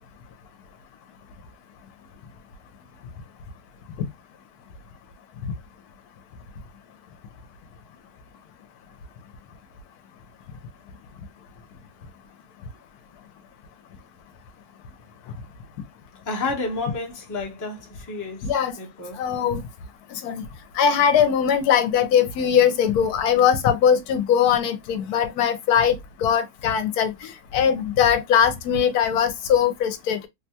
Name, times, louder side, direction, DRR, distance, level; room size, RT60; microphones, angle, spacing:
voice 1, 16.3-18.5 18.8-19.2, left 3 dB, 20° left, 0.5 m, -30 dB
voice 2, 18.4-18.7 19.2-19.6 20.1-20.4 20.8-27.1 27.5-30.3, left 8 dB, 80° left, 1.1 m, -20 dB
3.2 x 2.2 x 2.7 m
omnidirectional pair, 1.6 m